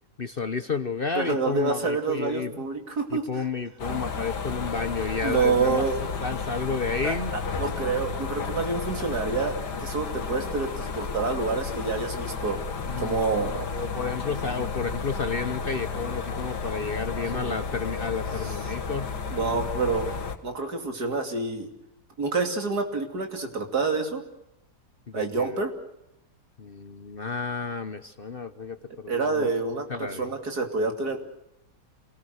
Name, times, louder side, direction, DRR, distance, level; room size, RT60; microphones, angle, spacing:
voice 1, 0.2-2.6 3.1-5.8 6.2-7.3 9.7-9.8 11.7-11.8 12.8-19.1 25.1-25.6 26.6-29.5 29.9-30.3, left 5 dB, 40° left, 10 dB, 1.0 m, -31 dB
voice 2, 1.1-3.4 5.2-6.0 7.0-7.1 7.6-12.6 13.0-13.7 17.3-17.6 18.3-18.5 19.3-20.2 20.4-21.7 22.2-24.2 25.1-25.7 29.1-31.2, right 4 dB, 75° right, 5 dB, 3.3 m, -27 dB
sound 1, 3.8-20.4, left 5 dB, 85° left, 2.3 m, -32 dB
27.5 x 18.5 x 8.0 m, 0.85 s
omnidirectional pair, 1.7 m